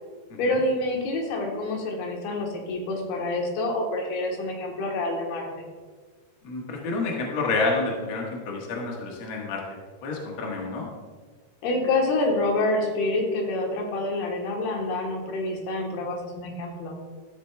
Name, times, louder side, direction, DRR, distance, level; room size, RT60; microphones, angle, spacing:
voice 1, 0.4-5.7 11.6-16.9, left 2 dB, 85° left, 1 dB, 3.3 m, -27 dB
voice 2, 6.4-9.6 10.0-10.9, left 3 dB, 55° left, -1 dB, 1.4 m, -29 dB
13.5 x 8.1 x 2.3 m, 1.5 s
omnidirectional pair, 4.4 m